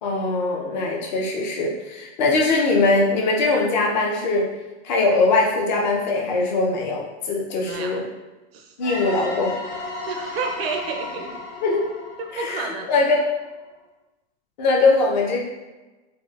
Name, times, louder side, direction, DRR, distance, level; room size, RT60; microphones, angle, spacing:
voice 1, 0.0-4.5 4.8-8.1 8.8-9.6 11.6-11.9 12.3-13.2 14.6-15.4, left 3 dB, 40° left, -1 dB, 0.5 m, -21 dB
voice 2, 7.6-8.0 8.5-8.7 10.1-11.3 12.2-12.9, right 4 dB, 55° right, 3 dB, 0.5 m, -30 dB
sound 1, 8.8-13.4, left 3 dB, 65° left, 1.2 m, -35 dB
4.2 x 2.1 x 2.3 m, 1.1 s
supercardioid pair, 175°, 36 cm